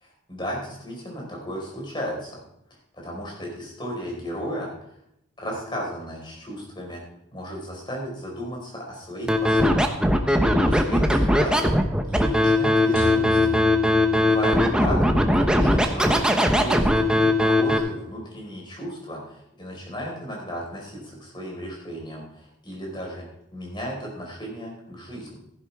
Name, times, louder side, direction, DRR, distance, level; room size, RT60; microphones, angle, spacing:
voice 1, 0.3-2.4 2.9-4.7 5.4-7.0 7.3-10.1 10.6-11.7 12.1-13.6 14.2-15.0 15.6-23.2 23.5-25.4, equal, 25° left, -2 dB, 4.8 m, -34 dB
Scratching (performance technique), 9.3-17.8, left 1 dB, 5° right, 0.9 m, -19 dB
sound 1, 13.0-15.2, left 2 dB, 70° left, 6.2 m, -35 dB
15.0 x 11.0 x 3.6 m, 0.77 s
head